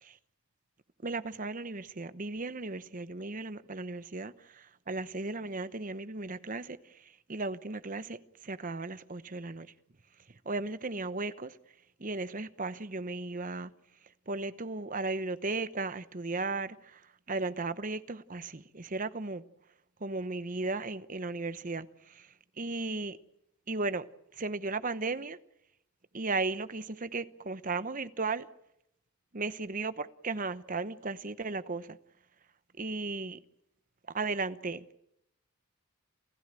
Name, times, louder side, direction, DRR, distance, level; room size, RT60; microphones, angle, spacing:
voice 1, 1.0-6.8 7.3-8.2 8.4-9.7 10.4-11.6 12.0-13.7 14.3-17.0 17.3-19.4 20.0-22.3 22.6-23.2 23.7-24.1 24.3-25.4 26.1-28.5 29.3-32.0 32.8-33.4 34.1-35.0, right 3 dB, 35° right, 0.9 m, -35 dB
29.5 x 15.0 x 9.0 m
head